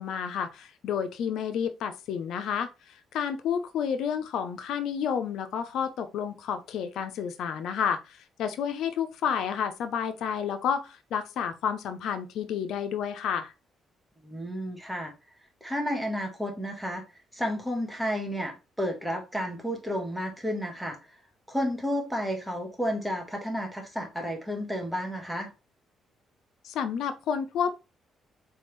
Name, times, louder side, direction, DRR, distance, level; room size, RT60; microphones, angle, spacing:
voice 1, 0.0-13.5 26.6-27.8, left 7 dB, 80° left, 0.7 m, -30 dB
voice 2, 14.2-15.1 15.6-17.0 17.3-21.0 21.5-25.5, equal, 5° right, 1.5 m, -31 dB
4.3 x 3.6 x 3.2 m
cardioid pair, 90°, 0 cm